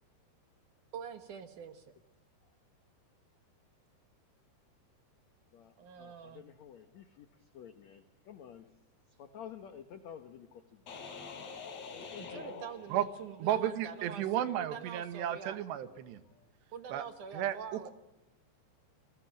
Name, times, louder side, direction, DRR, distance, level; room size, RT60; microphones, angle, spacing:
voice 1, 0.9-1.9 5.8-6.5 12.2-15.6 16.7-17.9, right 7 dB, 65° right, 9 dB, 2.2 m, -45 dB
voice 2, 5.5-8.7 9.1-10.8 11.9-12.7 16.3-16.5, left 8 dB, 70° left, 9 dB, 1.7 m, -51 dB
sound 1, 10.9-13.5, left 4 dB, 45° left, 3.9 m, -46 dB
voice 3, 13.4-16.2 16.9-17.0 17.3-17.9, right 11 dB, 85° right, 12 dB, 3.4 m, -33 dB
28.5 x 20.5 x 7.5 m, 1.0 s
omnidirectional pair, 4.9 m